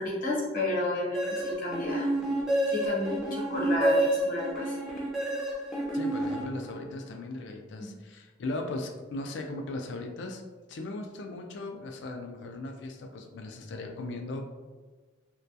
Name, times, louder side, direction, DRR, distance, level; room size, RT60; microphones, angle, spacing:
voice 1, 0.0-2.1 2.7-4.7 7.8-7.9, left 1 dB, 50° left, -5 dB, 0.9 m, -31 dB
sound 1, 1.1-7.0, right 1 dB, ahead, 0.4 m, -29 dB
voice 2, 5.9-10.4 10.7-14.4, left 2 dB, 70° left, 4 dB, 0.3 m, -38 dB
2.2 x 2.2 x 2.6 m, 1.3 s
head